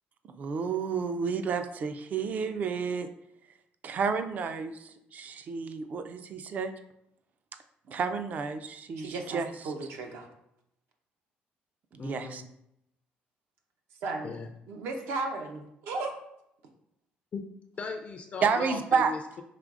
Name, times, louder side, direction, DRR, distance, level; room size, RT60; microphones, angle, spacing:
voice 1, 0.2-3.1 3.8-6.7 7.9-9.5 11.9-12.4 18.4-19.1, right 5 dB, 45° right, 9 dB, 0.4 m, -30 dB
voice 2, 9.0-10.3 14.0-14.3 14.7-16.1, right 3 dB, 75° right, 3 dB, 0.7 m, -35 dB
voice 3, 12.0-12.4 14.2-14.5 17.3-17.4 17.8-19.4, left 4 dB, 35° left, 4 dB, 0.3 m, -38 dB
4.9 x 3.1 x 2.4 m, 0.79 s
cardioid pair, 125°, 4 cm